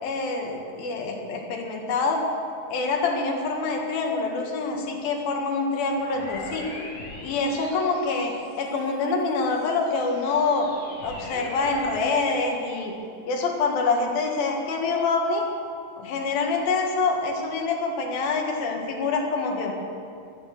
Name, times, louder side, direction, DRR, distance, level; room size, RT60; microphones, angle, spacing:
voice 1, 0.0-2.2 2.7-6.7 7.2-10.7 11.0-12.9 13.3-15.4 16.0-19.7, left 4 dB, 85° left, 1 dB, 3.5 m, -26 dB
sound 1, 5.9-8.8 9.4-12.3, left 2 dB, 65° left, 4.3 m, -41 dB
13.5 x 11.0 x 7.5 m, 2.4 s
omnidirectional pair, 4.1 m